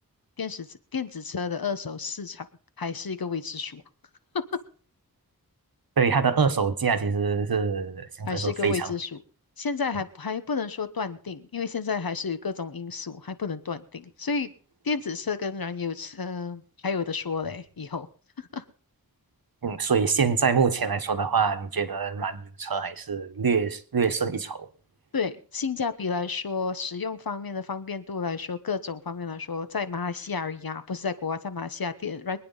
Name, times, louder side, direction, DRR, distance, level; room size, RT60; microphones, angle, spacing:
voice 1, 0.4-2.5 2.8-3.8 8.3-9.2 9.6-14.5 14.8-18.1 18.4-18.6 25.1-32.4, left 5 dB, 75° left, 1.2 m, -31 dB
voice 2, 6.0-8.9 19.6-24.7, right 5 dB, 75° right, 1.3 m, -25 dB
24.0 x 9.4 x 4.0 m
wide cardioid pair, 75°, 36 cm